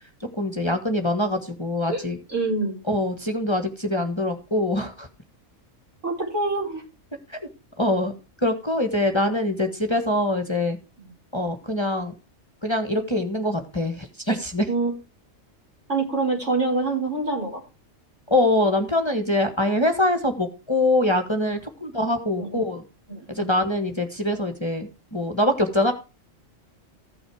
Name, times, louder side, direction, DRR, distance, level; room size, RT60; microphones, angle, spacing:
voice 1, 0.2-2.2 2.9-5.1 7.3-7.5 7.8-8.1 8.4-10.8 11.3-12.1 12.6-14.7 18.3-22.8 23.3-25.9, left 1 dB, 20° left, 5 dB, 1.5 m, -24 dB
voice 2, 2.3-2.8 6.0-6.8 14.7-14.9 15.9-17.6 22.4-22.5 23.1-23.5, right 3 dB, 65° right, -2 dB, 5.2 m, -25 dB
15.0 x 6.3 x 4.9 m, 0.31 s
omnidirectional pair, 1.4 m